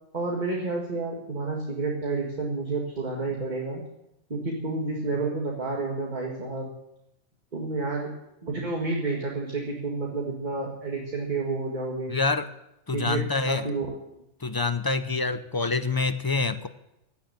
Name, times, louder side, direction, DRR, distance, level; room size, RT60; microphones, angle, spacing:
voice 1, 0.1-3.8 4.3-6.7 7.5-8.1 8.4-12.1 12.9-13.2 13.5-13.9, right 3 dB, 35° right, -1 dB, 2.1 m, -30 dB
voice 2, 12.1-12.5 12.9-13.7 14.4-16.7, left 4 dB, 25° left, 11 dB, 0.5 m, -26 dB
16.5 x 7.2 x 8.6 m, 0.87 s
omnidirectional pair, 1.3 m